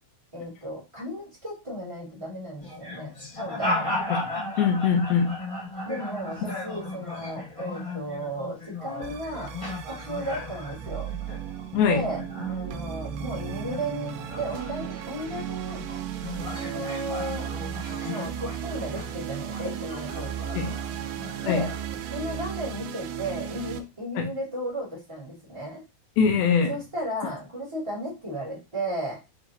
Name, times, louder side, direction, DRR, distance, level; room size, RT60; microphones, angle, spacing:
voice 1, 0.3-3.9 5.8-11.1 11.8-12.2 12.5-15.8 16.5-17.5 18.0-20.7 21.4-21.7 22.1-25.8 26.7-29.2, right 1 dB, 20° right, 0.9 m, -34 dB
sound 1, 2.6-13.1 13.4-22.1, left 2 dB, 60° left, 0.3 m, -36 dB
voice 2, 4.6-5.3 11.7-12.0 20.5-20.7 21.5-21.6 24.2-24.3 26.2-26.7, left 6 dB, 75° left, 2.5 m, -22 dB
sound 2, 9.0-23.8, right 10 dB, 90° right, 2.6 m, -35 dB
7.1 x 2.6 x 2.8 m
omnidirectional pair, 4.5 m